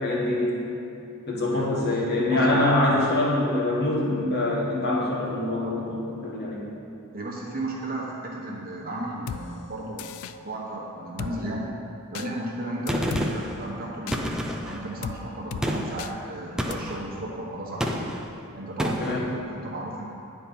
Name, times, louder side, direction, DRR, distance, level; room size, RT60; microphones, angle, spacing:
voice 1, 0.0-0.7 1.3-6.7 19.0-19.3, left 1 dB, 50° left, -5 dB, 1.6 m, -24 dB
voice 2, 1.5-2.0 2.3-3.0 5.6-5.8 7.1-11.7 12.1-18.0 18.5-20.0, right 1 dB, 45° right, -3 dB, 1.3 m, -34 dB
Drum kit, 9.3-9.4 10.0-10.3 11.2-11.3 12.1-12.3 12.9-13.3 14.1-14.2 15.0-15.2 15.5-15.7 16.0-16.1 16.7-16.8, left 8 dB, 75° left, 0.3 m, -35 dB
Gunshot gunfire, 12.9-13.6 14.1-14.8 15.6-16.0 16.6-17.0 17.8-18.3 18.8-19.2, equal, 5° right, 0.4 m, -28 dB
9.6 x 4.4 x 5.4 m, 2.7 s
head